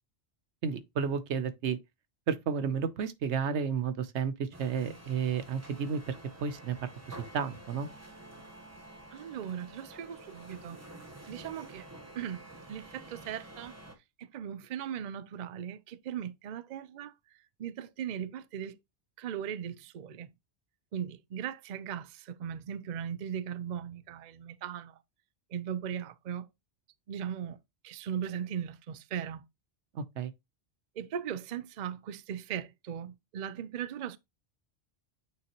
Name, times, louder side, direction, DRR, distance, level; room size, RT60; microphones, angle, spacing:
voice 1, 0.6-1.8 2.3-6.0 6.4-6.8 7.1-7.9 29.9-30.3, right 6 dB, 85° right, 1.1 m, -32 dB
sound 1, 4.5-13.9, right 1 dB, 15° right, 1.1 m, -50 dB
voice 2, 9.1-10.8 11.2-11.9 12.1-13.7 14.2-17.1 17.6-18.8 19.2-20.3 20.9-25.0 25.5-26.5 27.1-27.6 27.8-29.4 31.0-34.2, right 9 dB, 55° right, 0.5 m, -38 dB
8.6 x 3.8 x 3.0 m
omnidirectional pair, 1.2 m